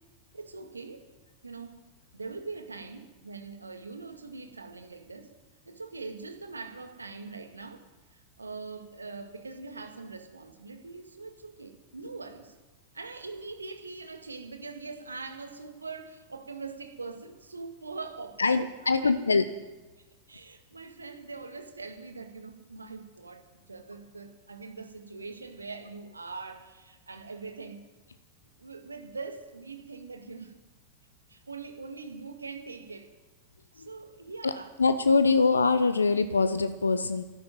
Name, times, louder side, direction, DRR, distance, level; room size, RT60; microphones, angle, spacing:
voice 1, 0.3-1.1 1.4-1.8 2.1-5.3 5.7-12.5 12.9-18.6 19.0-19.3 20.3-27.8 28.6-30.5 31.3-33.1 33.7-34.7, right 4 dB, 80° right, 6 dB, 1.7 m, -42 dB
voice 2, 18.4-19.4 34.4-34.5 34.8-37.2, left 4 dB, 75° left, 12 dB, 0.6 m, -23 dB
12.5 x 10.5 x 9.2 m, 1.1 s
figure-of-eight pair, 90°, 0 cm